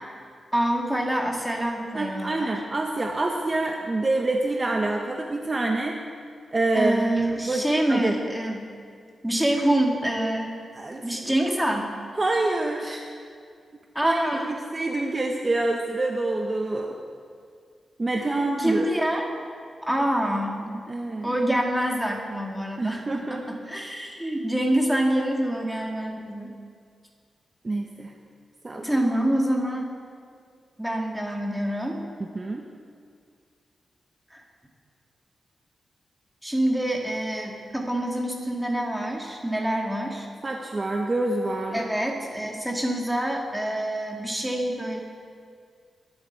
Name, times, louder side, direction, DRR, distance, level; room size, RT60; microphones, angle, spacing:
voice 1, 0.5-2.6 6.7-8.6 9.2-10.6 11.0-11.9 13.9-14.7 18.1-19.3 19.8-20.6 21.2-26.5 28.8-29.9 30.8-32.0 34.3-34.4 36.4-40.3 41.7-45.0, right 1 dB, 5° right, 0 dB, 2.5 m, -26 dB
voice 2, 1.9-5.9 6.5-7.1 7.5-8.1 10.8-11.0 12.2-13.0 14.0-16.9 18.0-18.9 19.9-20.0 20.9-21.3 22.8-23.5 27.6-28.1 28.6-28.8 32.3-32.6 40.4-41.8, right 2 dB, 30° right, 2 dB, 1.1 m, -26 dB
21.0 x 12.0 x 4.8 m, 2.2 s
cardioid pair, 95°, 0 cm